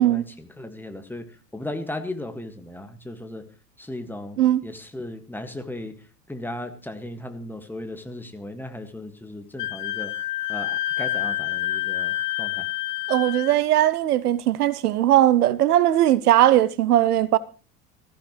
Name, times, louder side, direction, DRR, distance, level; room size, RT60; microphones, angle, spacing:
voice 1, 0.0-3.5 3.8-6.0 6.3-10.1 10.5-12.7, left 1 dB, 5° left, 1.8 m, -36 dB
Wind instrument woodwind instrument, 9.6-13.5, left 14 dB, 70° left, 0.6 m, -28 dB
voice 2, 13.1-17.4, right 13 dB, 70° right, 0.7 m, -19 dB
19.0 x 14.5 x 3.2 m
figure-of-eight pair, 80°, 48 cm